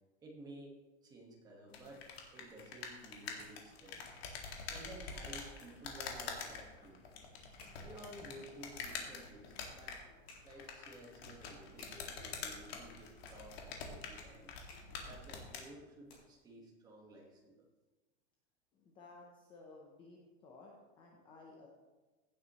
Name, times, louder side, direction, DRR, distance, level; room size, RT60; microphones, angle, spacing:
voice 1, 0.2-0.7 1.0-2.1 2.3-4.0 4.6-7.0 7.8-10.0 10.4-14.5 15.1-17.6, right 1 dB, 10° right, -1 dB, 1.5 m, -54 dB
sound 1, 1.7-15.7, left 5 dB, 65° left, 2.2 m, -46 dB
sound 2, 3.2-16.5, left 2 dB, 35° left, 3.9 m, -64 dB
voice 2, 18.7-21.7, left 3 dB, 15° left, -1 dB, 0.7 m, -56 dB
16.0 x 8.5 x 3.1 m, 1.2 s
supercardioid pair, 180°, 33 cm